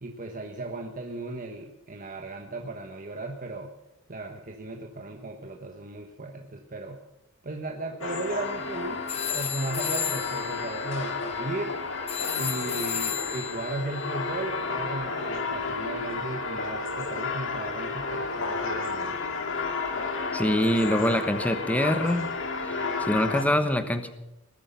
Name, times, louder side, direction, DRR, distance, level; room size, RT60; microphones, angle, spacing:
voice 1, 0.0-3.7 4.1-7.0 7.4-9.0 9.3-11.8 12.4-19.2, right 2 dB, 40° right, 3 dB, 1.3 m, -36 dB
sound 1, 8.0-23.4, left 4 dB, 65° left, 2.2 m, -32 dB
sound 2, 8.5-8.7 9.1-15.7, left 9 dB, 30° left, 0.7 m, -35 dB
voice 2, 20.3-22.3 22.6-24.1, left 1 dB, 5° left, 8 dB, 1.1 m, -25 dB
20.0 x 10.0 x 6.9 m, 0.90 s
head